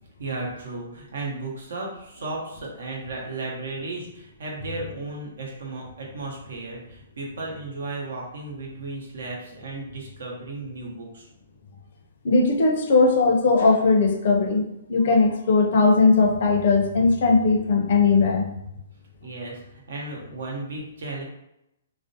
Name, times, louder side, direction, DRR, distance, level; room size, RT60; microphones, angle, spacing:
voice 1, 0.2-11.3 19.2-21.2, right 2 dB, 70° right, -1 dB, 0.8 m, -34 dB
voice 2, 12.2-14.6 14.9-18.5, left 3 dB, 55° left, 2 dB, 0.5 m, -19 dB
2.4 x 2.0 x 2.6 m, 0.84 s
hypercardioid pair, 155°, 0 cm